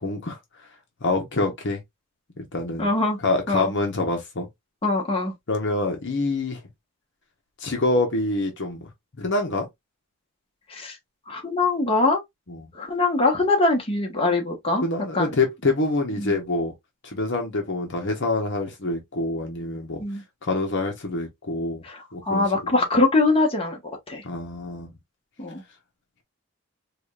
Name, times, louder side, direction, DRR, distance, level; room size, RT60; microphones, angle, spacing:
voice 1, 0.0-0.4 1.0-1.8 2.4-2.9 3.2-4.5 5.5-6.6 7.6-8.9 9.2-9.7 12.5-12.7 14.8-16.7 17.0-20.0 20.4-21.8 22.1-22.5 24.2-24.9, left 2 dB, 60° left, 0.9 m, -26 dB
voice 2, 2.8-3.2 3.5-3.7 4.8-5.3 10.7-11.0 11.3-12.2 12.7-14.9 15.1-15.4 16.2-16.3 20.0-20.2 21.8-23.8 24.1-24.2 25.4-25.6, left 2 dB, 30° left, 1.2 m, -22 dB
4.9 x 2.4 x 2.4 m
head